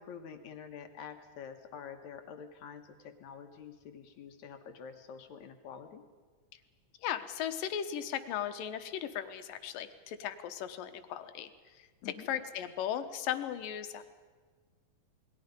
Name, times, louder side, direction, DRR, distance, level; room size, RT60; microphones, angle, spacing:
voice 1, 0.0-6.1 12.0-12.3, left 7 dB, 65° left, 6 dB, 2.5 m, -47 dB
voice 2, 7.0-11.9 12.3-14.0, left 10 dB, 85° left, 9 dB, 2.8 m, -37 dB
28.5 x 21.0 x 5.3 m, 1.5 s
omnidirectional pair, 3.8 m